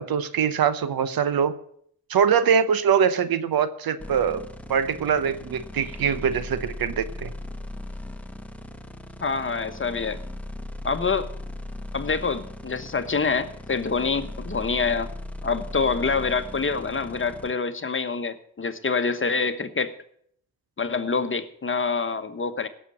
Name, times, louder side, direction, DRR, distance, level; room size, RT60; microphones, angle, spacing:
voice 1, 0.0-1.5 2.1-7.3, right 7 dB, 65° right, 13 dB, 0.9 m, -23 dB
sound 1, 4.0-17.5, left 1 dB, 5° left, 1.2 m, -38 dB
voice 2, 9.2-10.2 10.8-11.3 11.9-15.1 15.4-19.9 20.8-22.7, left 4 dB, 30° left, 10 dB, 1.2 m, -26 dB
16.5 x 6.8 x 6.6 m, 0.67 s
supercardioid pair, 45°, 38 cm